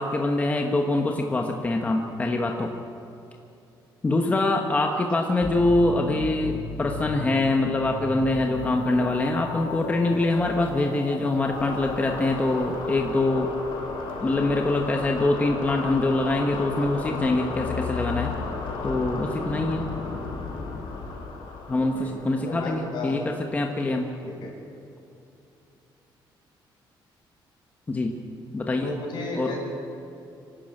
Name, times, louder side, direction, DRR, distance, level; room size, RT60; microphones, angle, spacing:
voice 1, 0.0-2.7 4.0-13.5 14.2-18.3 18.8-19.8 21.7-24.1 27.9-28.2 28.5-28.9 29.3-29.5, left 2 dB, 20° left, 2 dB, 1.1 m, -24 dB
sound 1, 5.4-23.9, left 4 dB, 90° left, 5.9 m, -34 dB
voice 2, 22.4-23.2 24.2-24.5 28.8-29.6, left 3 dB, 65° left, -1 dB, 6.7 m, -34 dB
25.0 x 12.0 x 8.9 m, 2.7 s
cardioid pair, 165°, 8 cm